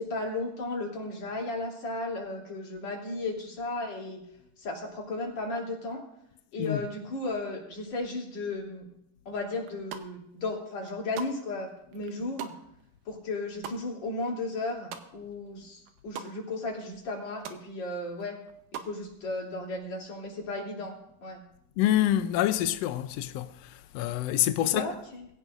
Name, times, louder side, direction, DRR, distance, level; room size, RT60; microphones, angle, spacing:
voice 1, 0.0-4.2 4.6-6.0 6.5-8.9 9.3-12.5 13.1-18.4 18.8-21.0 21.2-21.4 24.7-25.3, left 2 dB, 55° left, 4.4 m, -35 dB
sound 1, 9.7-10.3 10.7-15.5 15.7-16.3 16.7-16.8 17.0-17.6 18.0-19.0, right 8 dB, 85° right, 2.6 m, -43 dB
voice 2, 21.8-25.0, left 13 dB, 85° left, 1.4 m, -27 dB
21.5 x 16.5 x 2.6 m
omnidirectional pair, 3.6 m